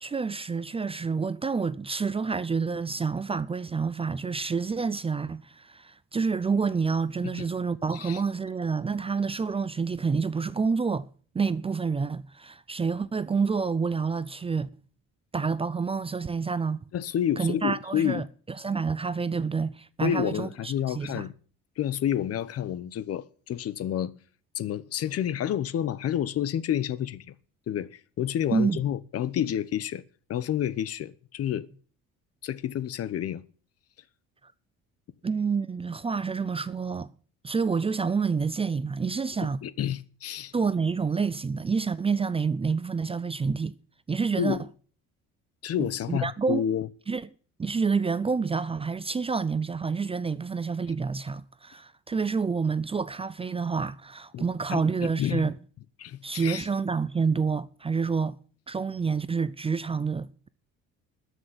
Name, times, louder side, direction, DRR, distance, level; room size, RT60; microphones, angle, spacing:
voice 1, 0.0-11.1 11.3-14.7 15.3-16.8 17.4-18.3 18.6-21.2 28.5-28.8 35.2-37.1 37.4-39.6 40.5-43.8 44.1-44.6 45.8-46.6 47.1-47.2 47.6-55.5 56.2-58.4 58.7-60.5, right 5 dB, 20° right, 0.5 m, -28 dB
voice 2, 16.9-18.3 20.0-21.3 21.8-24.1 24.5-27.3 27.7-30.0 30.3-31.7 32.4-33.4 39.4-40.5 44.4-44.6 45.6-46.9 54.3-54.4 54.7-55.4 56.0-56.7, left 10 dB, 50° left, 0.9 m, -29 dB
13.0 x 6.5 x 9.7 m
cardioid pair, 110°, 30 cm